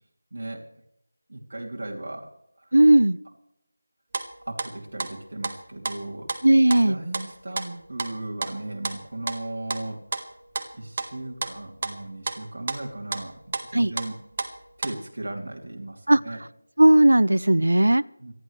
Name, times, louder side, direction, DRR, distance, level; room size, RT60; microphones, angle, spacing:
voice 1, 0.3-0.7 1.3-2.3 2.6-2.8 4.4-6.3 6.8-10.0 10.7-13.4 13.7-14.2 14.8-16.4 18.2-18.3, right 2 dB, 60° right, -3 dB, 3.0 m, -36 dB
voice 2, 2.7-3.2 6.4-7.0 13.7-13.9 16.1-16.2 16.8-18.0, right 1 dB, 90° right, 20 dB, 0.4 m, -16 dB
sound 1, 4.1-8.1 8.4-14.9, right 3 dB, 35° right, 1.5 m, -33 dB
26.0 x 11.0 x 3.3 m, 0.81 s
figure-of-eight pair, 170°, 0 cm